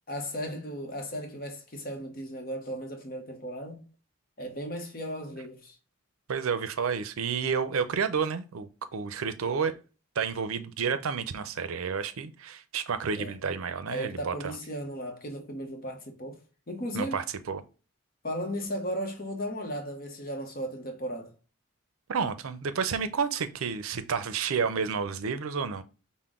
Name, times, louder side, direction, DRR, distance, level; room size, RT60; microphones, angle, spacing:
voice 1, 0.1-3.8 4.4-5.8 13.2-13.3 13.9-16.4 16.7-17.2 18.2-21.3, equal, 40° left, 0.8 m, -36 dB
voice 2, 6.3-9.7 10.2-14.6 16.9-17.6 22.1-25.8, right 6 dB, 80° right, 0.5 m, -30 dB
5.7 x 2.1 x 3.6 m
head